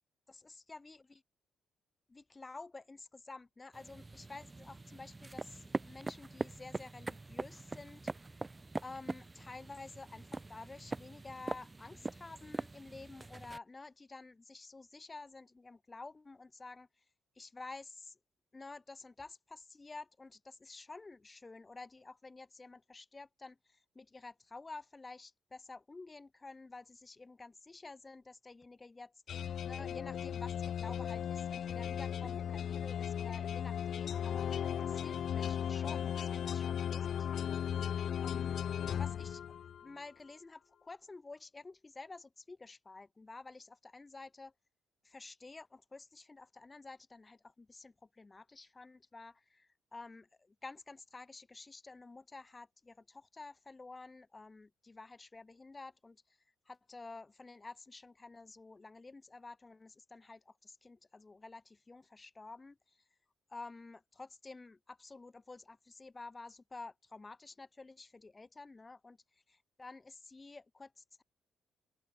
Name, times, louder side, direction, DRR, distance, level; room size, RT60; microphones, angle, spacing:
voice 1, 0.3-1.0 2.1-8.3 8.8-16.9 17.3-18.2 18.5-38.6 38.9-44.5 45.0-56.4 56.6-63.0 63.5-69.2 69.5-71.2, left 3 dB, 25° left, 1.6 m, -51 dB
sound 1, 3.7-13.6, right 3 dB, 20° right, 1.9 m, -43 dB
sound 2, 29.3-39.9, left 9 dB, 60° left, 0.4 m, -36 dB
open air
cardioid pair, 90°, 0 cm